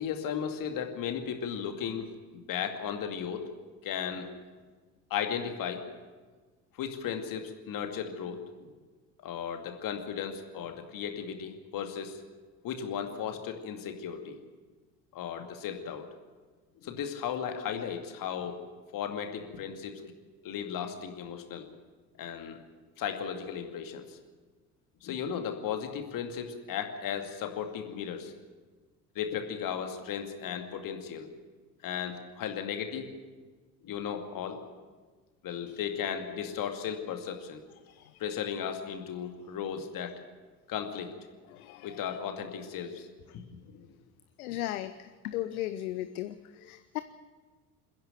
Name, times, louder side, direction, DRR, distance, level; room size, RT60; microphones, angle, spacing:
voice 1, 0.0-2.1 2.3-3.4 3.8-4.3 5.1-5.8 6.8-8.7 9.2-12.2 12.6-14.4 15.1-16.0 16.8-18.6 18.9-20.1 20.4-21.7 22.2-22.6 23.0-24.0 25.0-28.3 29.2-31.3 31.8-33.1 33.8-34.6 35.4-37.6 38.2-40.1 40.7-41.1 41.8-43.1 43.5-43.9, left 8 dB, 45° left, 5 dB, 2.4 m, -35 dB
voice 2, 41.5-42.2 43.3-43.4 44.4-47.0, left 14 dB, 60° left, 11 dB, 0.8 m, -37 dB
28.0 x 10.5 x 9.1 m, 1.4 s
figure-of-eight pair, 60°, 48 cm